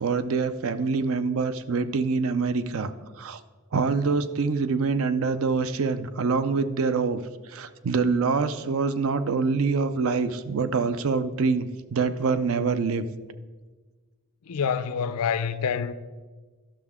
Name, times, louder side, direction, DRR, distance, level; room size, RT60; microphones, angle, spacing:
voice 1, 0.0-2.9 3.2-3.4 3.7-7.2 7.5-13.1, right 4 dB, 65° right, 0.5 m, -25 dB
voice 2, 14.5-15.9, left 7 dB, 80° left, 0.5 m, -27 dB
12.0 x 6.3 x 3.6 m
head